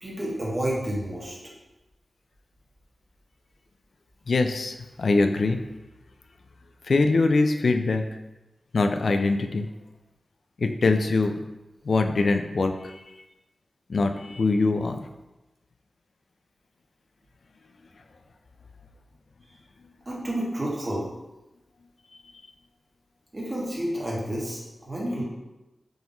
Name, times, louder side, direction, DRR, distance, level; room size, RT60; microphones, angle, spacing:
voice 1, 0.0-1.4 20.0-21.1 23.3-25.2, right 1 dB, 30° right, -5 dB, 1.2 m, -30 dB
voice 2, 4.3-5.6 6.8-8.0 8.7-9.7 10.6-11.3 11.8-13.2 13.9-15.0, left 3 dB, 65° left, 6 dB, 0.3 m, -23 dB
3.8 x 2.9 x 3.9 m, 1.0 s
wide cardioid pair, 95°, 0 cm